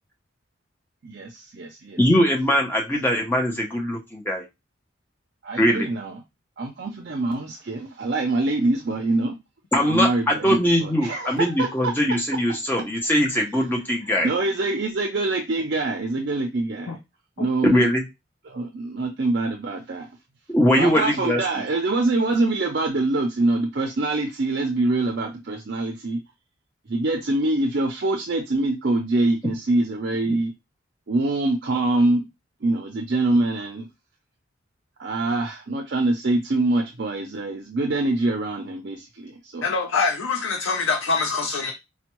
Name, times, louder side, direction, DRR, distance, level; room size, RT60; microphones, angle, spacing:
voice 1, 1.0-2.0 5.4-6.2 6.6-9.4 9.7-11.9 13.3-13.5 14.2-16.9 17.4-17.9 18.5-20.1 20.7-26.2 26.9-30.5 31.1-32.2 32.6-33.9 35.0-39.7, right 2 dB, 55° right, 3 dB, 0.5 m, -24 dB
voice 2, 2.0-4.4 5.6-5.9 9.7-14.3 17.6-18.0 20.5-21.4, equal, 10° left, 1 dB, 0.6 m, -21 dB
voice 3, 39.6-41.7, left 4 dB, 85° left, 2 dB, 0.5 m, -24 dB
4.3 x 2.2 x 3.0 m, 0.23 s
head